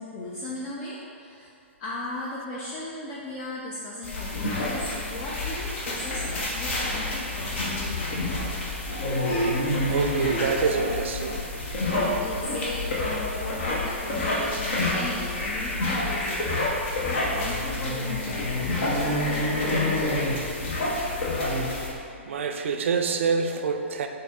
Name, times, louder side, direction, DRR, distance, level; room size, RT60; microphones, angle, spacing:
voice 1, 0.0-1.5 1.8-8.6 9.7-9.8 12.0-16.7 17.1-20.3, left 2 dB, 35° left, -5 dB, 0.5 m, -37 dB
sound 1, 4.0-21.9, left 1 dB, 60° left, 1.0 m, -28 dB
voice 2, 9.9-11.4 22.3-24.1, right 5 dB, 65° right, 5 dB, 0.4 m, -26 dB
4.0 x 2.6 x 3.6 m, 2.5 s
hypercardioid pair, 120°, 7 cm